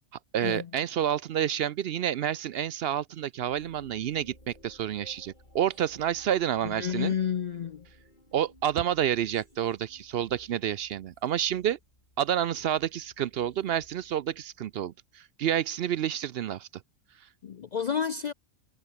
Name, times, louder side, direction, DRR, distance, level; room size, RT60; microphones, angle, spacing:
voice 1, 0.3-7.1 8.3-11.8 12.2-16.7 17.2-17.3, right 10 dB, 65° right, 0.7 m, -29 dB
sound 1, 3.4-14.9, left 1 dB, 40° left, 8.3 m, -58 dB
voice 2, 6.6-7.9 17.4-18.3, left 8 dB, 55° left, 0.5 m, -30 dB
omnidirectional pair, 1.2 m